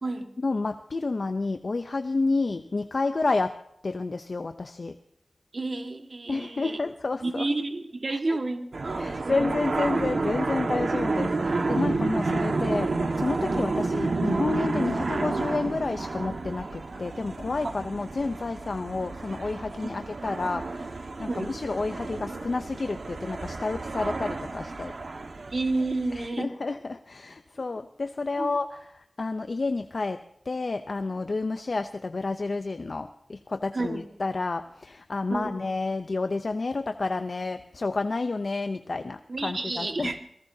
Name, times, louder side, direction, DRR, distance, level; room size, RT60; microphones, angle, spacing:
voice 1, 0.4-3.5 3.8-5.0 6.3-7.5 8.1-8.4 9.0-24.9 26.1-30.2 30.5-40.2, left 3 dB, 60° left, 8 dB, 0.6 m, -30 dB
voice 2, 5.5-6.8 7.2-9.5 17.6-17.7 21.3-21.5 25.5-26.5 28.4-28.5 33.7-34.0 35.3-35.5 39.3-40.2, right 2 dB, 55° right, 4 dB, 1.7 m, -30 dB
sound 1, 8.7-26.3, right 3 dB, 75° right, 1.4 m, -30 dB
26.5 x 18.0 x 2.8 m, 0.74 s
wide cardioid pair, 85°, 0 cm